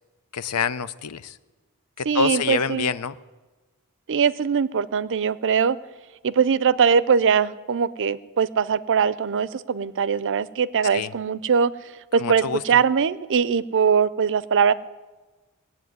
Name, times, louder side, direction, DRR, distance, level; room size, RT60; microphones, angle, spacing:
voice 1, 0.3-1.4 2.0-3.1 10.9-11.1 12.2-12.8, left 6 dB, 80° left, 16 dB, 0.6 m, -26 dB
voice 2, 2.1-2.9 4.1-5.8 6.2-11.7 12.1-14.7, right 6 dB, 60° right, 18 dB, 0.5 m, -21 dB
19.0 x 8.0 x 9.4 m, 1.2 s
head